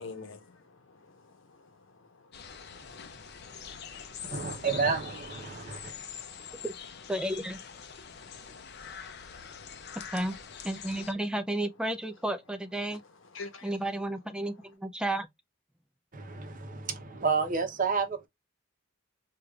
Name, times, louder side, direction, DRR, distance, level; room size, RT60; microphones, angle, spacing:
voice 1, 0.0-4.3 5.5-6.6 7.9-10.0 12.9-13.0 13.3-13.8, left 4 dB, 80° left, 0.9 m, -50 dB
sound 1, 2.3-11.1, left 7 dB, 55° left, 0.5 m, -44 dB
voice 2, 4.2-5.9 16.1-18.3, right 5 dB, 45° right, 0.7 m, -30 dB
voice 3, 7.1-7.6 10.1-10.4 10.6-13.0 13.6-15.3, right 1 dB, 5° right, 0.3 m, -32 dB
4.8 x 2.3 x 2.3 m
head